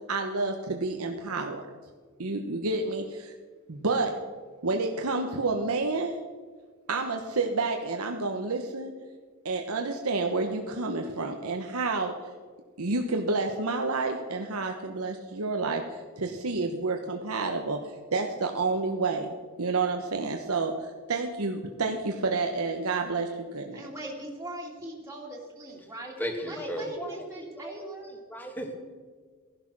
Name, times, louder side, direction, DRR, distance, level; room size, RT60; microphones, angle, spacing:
voice 1, 0.1-1.6 2.2-3.3 3.7-4.1 4.6-6.2 6.9-8.9 9.4-12.1 12.8-23.8, right 3 dB, 80° right, 3 dB, 1.1 m, -29 dB
voice 2, 23.7-26.1 26.4-28.1, right 1 dB, 15° right, -3 dB, 2.4 m, -40 dB
voice 3, 26.2-27.7 28.0-28.7, equal, 10° left, 3 dB, 2.1 m, -35 dB
16.0 x 11.5 x 6.1 m, 1.5 s
head